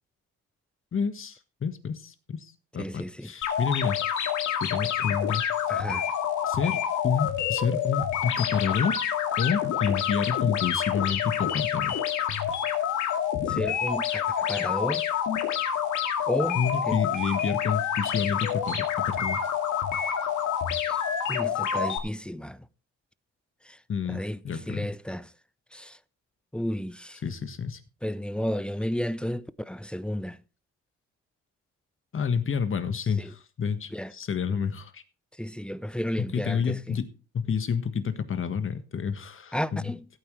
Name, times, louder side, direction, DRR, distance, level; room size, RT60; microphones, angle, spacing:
voice 1, 0.9-4.0 4.6-5.4 6.5-6.8 7.0-9.0 9.4-11.9 16.5-19.4 23.9-24.9 27.2-27.8 32.1-35.0 36.2-39.8, left 6 dB, 45° left, 1.6 m, -29 dB
voice 2, 2.8-3.3 5.7-6.0 13.5-15.0 16.3-16.6 16.9-17.0 20.8-21.0 21.3-22.6 23.7-23.8 24.1-24.4 24.7-25.3 25.7-26.0 26.5-27.2 28.0-30.4 33.2-33.3 33.9-34.1 35.4-37.0 39.5-40.0, equal, 5° left, 0.5 m, -32 dB
sound 1, 3.4-22.0, left 9 dB, 75° left, 2.1 m, -28 dB
16.0 x 9.0 x 3.3 m
cardioid pair, 90°, 30 cm